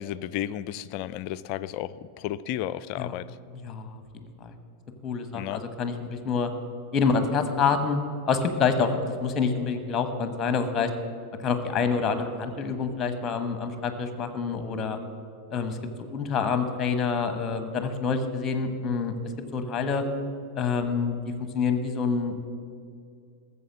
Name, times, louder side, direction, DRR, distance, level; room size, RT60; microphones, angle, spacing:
voice 1, 0.0-3.3 5.3-5.6, left 12 dB, 45° left, 16 dB, 0.4 m, -33 dB
voice 2, 3.6-4.5 5.0-6.5 6.9-8.0 8.3-10.9 11.4-15.0 15.5-19.1 19.5-20.0 20.5-21.2 21.5-22.4, left 5 dB, 25° left, 9 dB, 1.2 m, -27 dB
14.0 x 7.0 x 7.3 m, 2.3 s
figure-of-eight pair, 90°, 0 cm